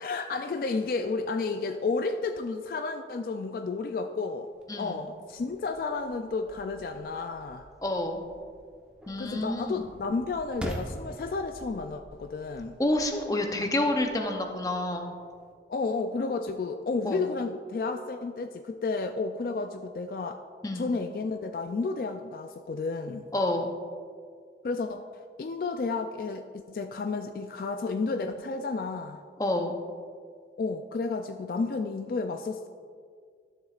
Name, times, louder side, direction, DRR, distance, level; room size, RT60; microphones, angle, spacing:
voice 1, 0.0-7.7 9.2-12.8 15.7-20.4 20.7-23.3 24.6-25.0 25.4-29.2 30.6-32.7, left 4 dB, 55° left, 7 dB, 0.3 m, -32 dB
sound 1, 4.6-15.5, equal, 5° right, 0.8 m, -46 dB
voice 2, 7.8-8.2 9.1-9.9 12.8-15.1 17.0-17.2 20.6-20.9 23.3-23.7 29.4-29.8, left 1 dB, 20° left, 3 dB, 0.6 m, -28 dB
12.5 x 7.4 x 2.4 m, 2.1 s
head